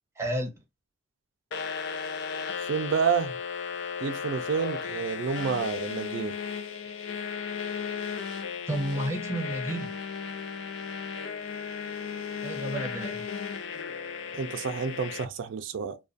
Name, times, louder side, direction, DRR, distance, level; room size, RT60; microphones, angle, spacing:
voice 1, 0.2-0.5 8.7-9.9 12.4-13.3, right 1 dB, 15° right, 0.6 m, -31 dB
sound 1, 1.5-15.2, left 6 dB, 70° left, 0.5 m, -35 dB
voice 2, 2.6-3.4 4.0-6.3 14.3-16.0, right 6 dB, 70° right, 0.3 m, -29 dB
2.4 x 2.2 x 2.4 m
head